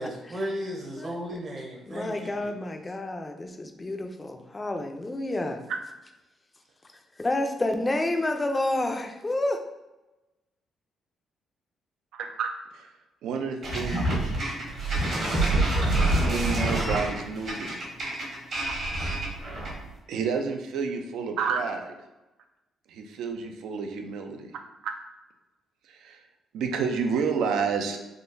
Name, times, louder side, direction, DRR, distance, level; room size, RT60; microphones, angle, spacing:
voice 1, 0.0-2.5, equal, 45° right, -2 dB, 0.8 m, -35 dB
voice 2, 1.0-1.4 1.9-5.6 7.2-9.6, left 2 dB, 20° left, 5 dB, 0.4 m, -29 dB
voice 3, 12.1-12.9 13.2-14.2 16.2-17.8 18.6-18.8 20.1-21.9 22.9-24.5 24.8-24.9 25.9-26.2 26.5-28.0, right 5 dB, 80° right, 4 dB, 0.4 m, -30 dB
sound 1, 13.6-19.9, right 2 dB, 60° right, 1.4 m, -26 dB
3.6 x 2.4 x 2.5 m, 1.0 s
cardioid pair, 90°, 0 cm